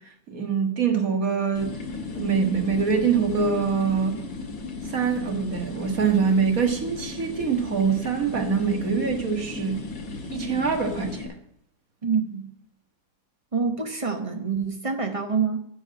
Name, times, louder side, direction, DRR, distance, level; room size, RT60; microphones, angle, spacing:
voice 1, 0.3-1.8 2.1-4.2 4.8-9.8 10.3-11.3, right 6 dB, 50° right, 1.9 m, -24 dB
sound 1, 1.6-11.2, left 3 dB, 75° left, 2.8 m, -35 dB
voice 2, 12.0-12.5 13.5-15.6, right 5 dB, 25° right, 0.8 m, -26 dB
10.0 x 7.1 x 8.3 m
omnidirectional pair, 2.0 m